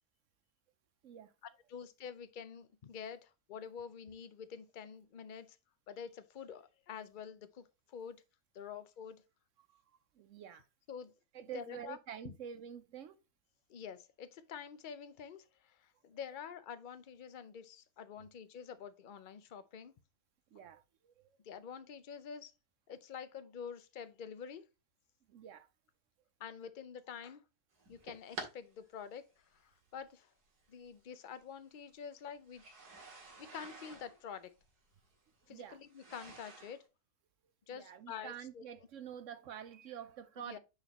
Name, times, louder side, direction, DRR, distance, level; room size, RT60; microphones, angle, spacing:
voice 1, 1.7-5.6 5.9-8.2 8.5-9.2 10.9-11.1 11.5-12.0 12.2-12.3 13.7-19.9 21.4-22.5 22.9-24.7 26.4-27.4 27.9-30.3 30.7-32.6 33.4-34.5 35.5-36.9 37.7-38.6 40.4-40.6, left 7 dB, 70° left, 0.4 m, -47 dB
voice 2, 10.1-10.7 11.3-13.2 20.5-21.4 25.3-25.7 35.5-35.8 37.7-40.6, right 9 dB, 65° right, 0.9 m, -48 dB
sound 1, 27.8-28.5 29.5-29.6 30.8-30.9 32.5-36.8, right 3 dB, 80° right, 2.4 m, -50 dB
9.5 x 4.1 x 2.9 m
omnidirectional pair, 1.7 m